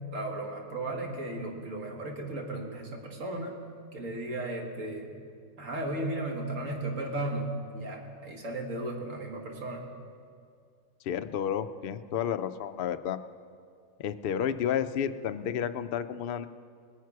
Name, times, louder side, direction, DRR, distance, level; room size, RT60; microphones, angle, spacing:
voice 1, 0.1-3.5 3.9-5.1 5.6-9.9, right 2 dB, 65° right, 1 dB, 1.9 m, -35 dB
voice 2, 11.0-13.2 14.0-16.5, left 9 dB, 65° left, 9 dB, 0.5 m, -31 dB
20.0 x 9.3 x 4.7 m, 2.3 s
omnidirectional pair, 1.4 m